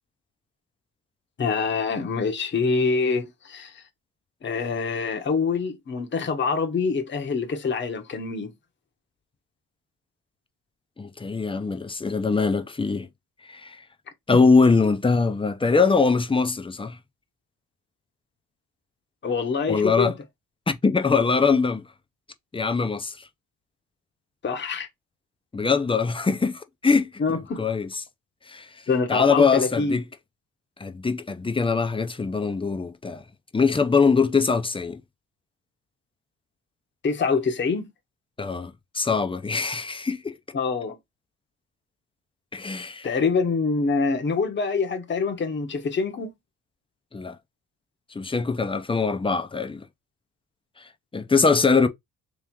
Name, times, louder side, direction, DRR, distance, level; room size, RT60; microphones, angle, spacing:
voice 1, 1.4-3.8 4.4-8.5 19.2-20.1 24.4-24.9 27.2-27.6 28.9-30.0 37.0-37.9 40.5-41.0 43.0-46.3, left 4 dB, 30° left, 1.0 m, -25 dB
voice 2, 11.0-13.1 13.4-13.8 14.3-17.0 19.7-20.1 20.7-21.8 22.5-23.3 25.5-27.1 27.6-27.9 28.5-28.7 29.1-30.0 30.8-33.2 33.5-35.0 38.4-40.4 42.5-43.1 47.1-47.4 48.1-49.8 50.8-51.9, left 4 dB, 15° left, 0.6 m, -22 dB
3.3 x 3.1 x 3.6 m
cardioid pair, 95°, 37 cm